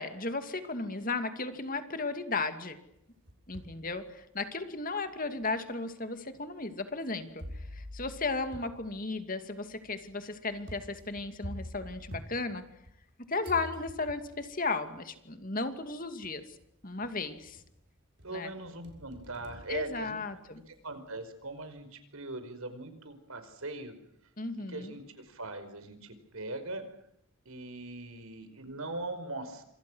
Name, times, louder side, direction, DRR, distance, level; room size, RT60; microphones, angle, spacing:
voice 1, 0.0-2.8 3.5-12.7 13.3-16.4 16.8-17.6 18.3-18.5 19.7-20.6 24.4-24.9, left 3 dB, 40° left, 8 dB, 2.5 m, -35 dB
sound 1, 2.9-3.8 4.4-4.5 5.4-5.5 7.4-13.1 13.4-14.4 15.6-15.7 16.2-16.6 17.0-17.8 18.2-20.6, equal, 55° right, 6.6 m, -47 dB
voice 2, 18.2-20.2 20.7-23.9 24.6-26.8 27.4-29.6, right 2 dB, 75° right, 9 dB, 5.1 m, -40 dB
27.5 x 26.5 x 6.4 m, 0.75 s
head